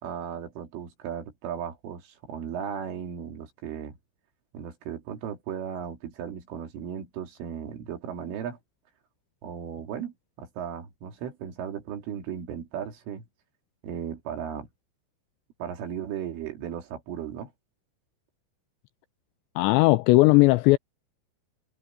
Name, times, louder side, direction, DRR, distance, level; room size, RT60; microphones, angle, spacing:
voice 1, 0.0-4.0 4.5-8.6 9.4-13.3 13.8-14.7 15.6-17.5, right 8 dB, 80° right, 5.5 m, -36 dB
voice 2, 19.6-20.8, left 21 dB, 85° left, 2.5 m, -18 dB
omnidirectional pair, 5.6 m